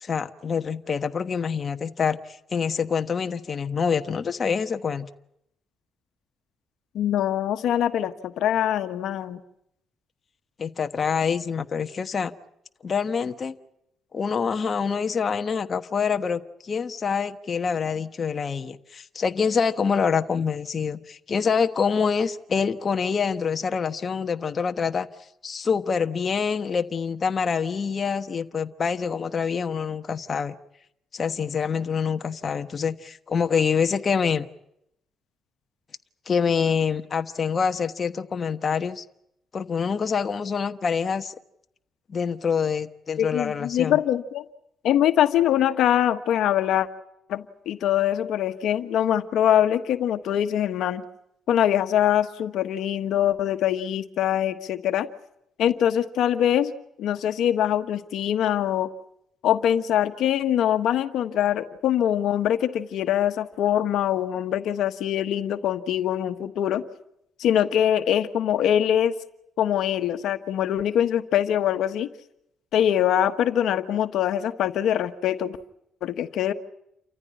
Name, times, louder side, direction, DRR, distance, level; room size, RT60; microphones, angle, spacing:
voice 1, 0.0-5.1 10.6-12.3 12.8-13.5 14.1-25.1 25.4-30.5 31.1-34.5 36.3-39.0 39.5-41.3 42.1-44.0, left 6 dB, 40° left, 7 dB, 1.1 m, -26 dB
voice 2, 6.9-9.4 43.2-44.4 44.8-46.9 47.3-51.0 51.5-55.1 55.6-56.7 57.0-58.9 59.4-66.8 67.4-69.1 69.6-72.1 72.7-75.6 76.0-76.5, left 10 dB, 80° left, 9 dB, 1.3 m, -23 dB
29.0 x 14.5 x 9.9 m, 0.79 s
cardioid pair, 90°, 0 cm